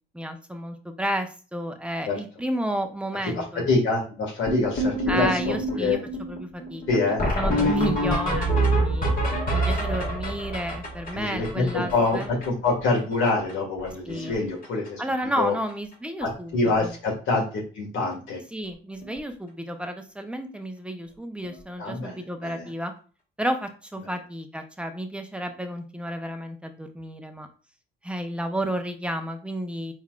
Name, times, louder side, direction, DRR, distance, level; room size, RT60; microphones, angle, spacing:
voice 1, 0.1-3.7 5.1-6.8 7.3-9.1 9.5-12.3 14.1-14.5 15.0-16.5 16.8-16.9 18.5-22.9 23.4-27.5 28.0-29.9, right 1 dB, 5° right, 6 dB, 0.7 m, -31 dB
voice 2, 3.4-6.0 6.9-7.2 7.6-7.8 11.1-15.0 15.4-15.5 16.2-18.4 21.8-22.7, left 3 dB, 80° left, -1 dB, 1.7 m, -26 dB
sound 1, 4.5-12.7 13.0-13.1 13.3-13.5 13.8-14.3 14.6-14.9 15.7-15.8 16.2-16.3 16.6-16.7 19.0-19.1 21.4-21.5, right 1 dB, 45° left, 1.7 m, -26 dB
4.2 x 3.9 x 2.4 m, 0.38 s
cardioid pair, 90°, 20 cm